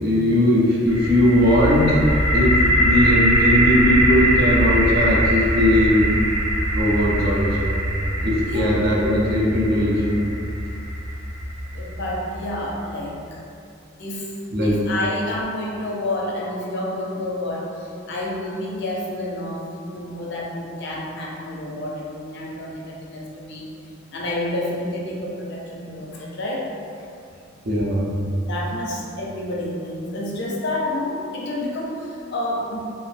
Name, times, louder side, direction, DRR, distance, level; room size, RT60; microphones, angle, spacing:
voice 1, 0.0-2.0 2.3-6.2 6.7-7.8 8.2-10.2 14.5-14.9 27.6-28.2, left 1 dB, 55° right, -5 dB, 0.5 m, -19 dB
sound 1, 0.9-12.7, right 1 dB, 75° right, 0.9 m, -22 dB
voice 2, 11.7-13.4 14.0-14.3 14.6-19.7 19.9-23.7 24.1-26.7 28.5-33.0, left 1 dB, 65° left, -3 dB, 0.5 m, -29 dB
2.5 x 2.0 x 3.3 m, 2.5 s
head